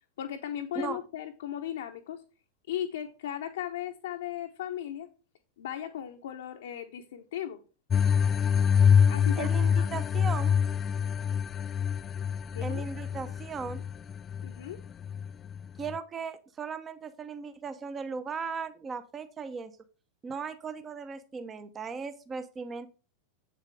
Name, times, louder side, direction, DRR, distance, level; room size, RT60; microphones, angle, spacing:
voice 1, 0.2-2.2 2.7-5.1 5.6-7.6 9.1-9.5 9.8-10.0 12.5-12.9 14.4-14.8, left 10 dB, 60° left, 5 dB, 0.8 m, -37 dB
sound 1, 7.9-16.0, left 7 dB, 25° left, 0.3 m, -26 dB
voice 2, 9.4-10.6 12.6-13.8 15.8-19.7 20.2-22.9, right 5 dB, 20° right, 12 dB, 0.8 m, -37 dB
8.1 x 7.6 x 3.4 m, 0.34 s
figure-of-eight pair, 90°, 0 cm